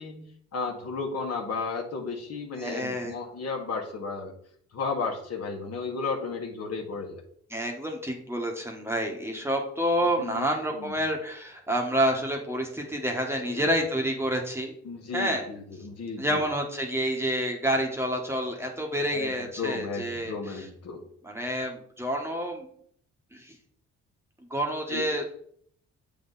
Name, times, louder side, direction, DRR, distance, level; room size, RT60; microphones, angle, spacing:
voice 1, 0.0-4.3 4.7-7.2 10.2-11.0 13.4-13.7 14.8-16.5 19.1-21.0 24.9-25.1, left 4 dB, 55° left, 2 dB, 1.5 m, -34 dB
voice 2, 2.6-3.1 7.5-14.7 15.1-15.5 16.2-20.3 21.2-22.7 23.3-23.5 24.5-25.2, equal, 10° right, 1 dB, 1.3 m, -28 dB
7.5 x 3.9 x 4.1 m, 0.63 s
cardioid pair, 90°, 30 cm